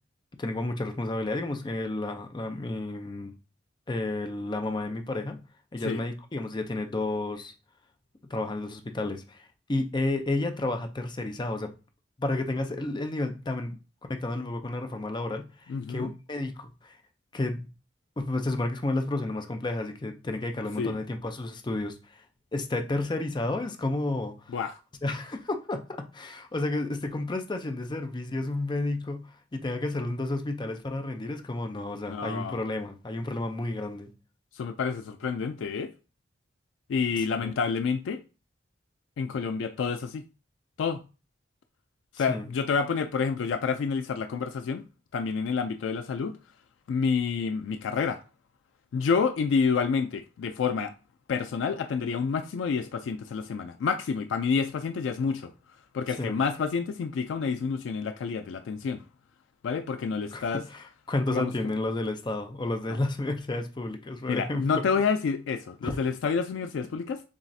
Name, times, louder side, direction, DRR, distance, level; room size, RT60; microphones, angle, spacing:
voice 1, 0.4-3.3 3.9-5.4 5.7-7.5 8.3-11.7 12.2-13.7 14.1-17.0 17.3-17.7 18.2-22.2 22.5-24.5 25.0-34.1 37.2-37.5 42.2-42.5 56.1-56.4 60.3-64.9 65.8-66.0, left 2 dB, 25° left, 0.5 m, -31 dB
voice 2, 15.7-16.1 20.8-21.0 24.5-24.7 32.1-32.6 34.5-35.9 36.9-38.2 39.2-40.2 40.8-41.0 42.1-44.8 45.1-46.3 46.9-48.2 48.9-50.9 51.3-55.5 55.9-59.0 59.6-60.6 61.3-61.7 64.3-67.2, left 5 dB, 85° left, 0.3 m, -28 dB
7.1 x 2.4 x 2.6 m
head